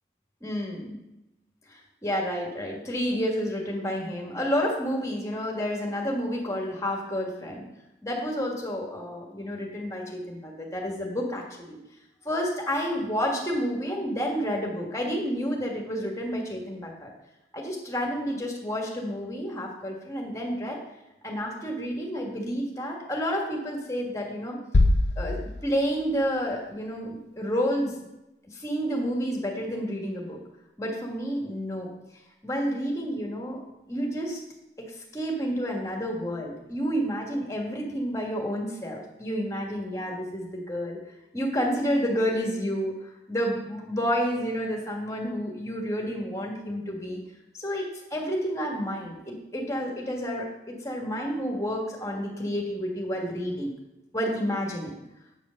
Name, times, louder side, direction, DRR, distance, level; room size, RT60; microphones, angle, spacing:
voice 1, 0.4-1.0 1.7-7.6 8.0-11.8 12.2-17.1 17.5-20.8 21.2-24.6 25.2-28.0 28.5-30.4 30.8-31.9 32.4-33.6 33.9-34.4 34.9-41.0 41.3-42.9 43.3-47.2 47.5-53.7 54.1-55.0, equal, 15° left, -1 dB, 1.6 m, -30 dB
sound 1, 24.7-26.6, left 2 dB, 80° left, 0.6 m, -24 dB
8.6 x 5.0 x 6.4 m, 0.93 s
head